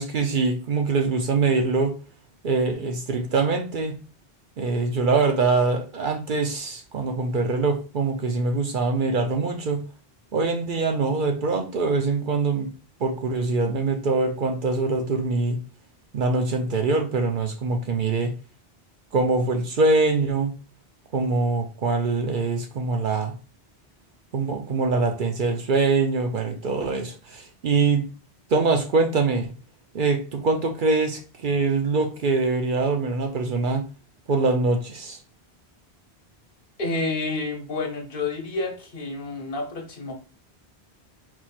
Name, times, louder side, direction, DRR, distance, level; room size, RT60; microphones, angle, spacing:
voice 1, 0.0-1.9 2.4-3.9 4.6-9.8 10.3-12.7 13.0-15.6 16.1-18.3 19.1-20.5 21.1-23.3 24.3-28.1 28.5-29.5 29.9-33.8 34.3-35.2, right 3 dB, 60° right, 5 dB, 0.7 m, -23 dB
voice 2, 36.8-40.1, left 3 dB, 60° left, 3 dB, 1.1 m, -29 dB
4.4 x 2.4 x 4.2 m, 0.35 s
omnidirectional pair, 1.1 m